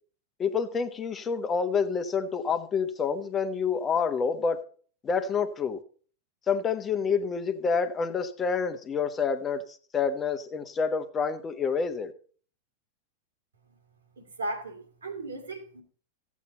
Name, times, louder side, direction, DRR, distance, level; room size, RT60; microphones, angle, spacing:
voice 1, 0.4-4.6 5.0-5.8 6.5-9.6 9.9-12.1, left 5 dB, 20° left, 1.1 m, -28 dB
voice 2, 14.2-15.8, right 2 dB, 70° right, 2.6 m, -36 dB
14.5 x 8.4 x 4.1 m
figure-of-eight pair, 90°, 0 cm